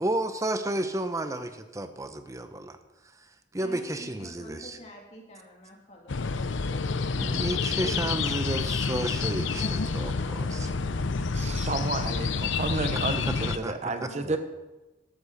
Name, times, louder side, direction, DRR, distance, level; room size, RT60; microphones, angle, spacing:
voice 1, 0.0-2.8 3.5-4.8 7.1-10.7 13.3-13.7 14.0-14.4, right 1 dB, 15° right, 9 dB, 0.9 m, -32 dB
voice 2, 3.6-7.9 9.5-11.5 14.0-14.4, equal, 35° left, -1 dB, 3.0 m, -49 dB
sound 1, 6.1-13.6, left 4 dB, 85° left, 0.7 m, -28 dB
voice 3, 11.3-14.4, right 3 dB, 35° right, 8 dB, 1.0 m, -31 dB
13.0 x 13.0 x 4.2 m, 1.1 s
head